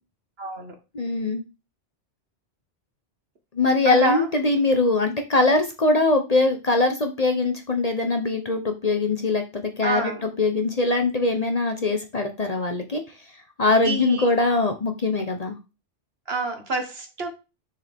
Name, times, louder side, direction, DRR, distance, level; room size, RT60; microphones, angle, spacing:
voice 1, 0.4-0.8 3.9-4.3 9.8-10.3 13.8-14.3 16.3-17.3, right 3 dB, 60° right, 5 dB, 1.7 m, -27 dB
voice 2, 0.9-1.4 3.5-13.0 13.6-15.6, left 2 dB, 35° left, 5 dB, 1.0 m, -22 dB
6.7 x 6.5 x 3.6 m, 0.27 s
omnidirectional pair, 1.2 m